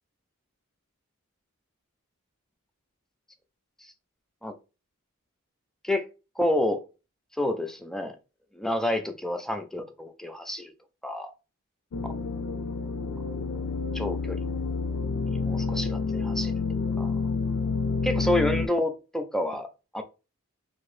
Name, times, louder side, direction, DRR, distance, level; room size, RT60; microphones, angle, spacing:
voice 1, 6.4-6.8 7.4-8.1 8.5-10.7 11.0-11.3 12.0-12.1 13.9-14.5 15.3-16.5 17.0-17.1 18.0-19.7 19.9-20.0, left 1 dB, ahead, 0.3 m, -29 dB
sound 1, 11.9-18.7, left 4 dB, 85° left, 0.4 m, -29 dB
2.8 x 2.6 x 3.1 m
head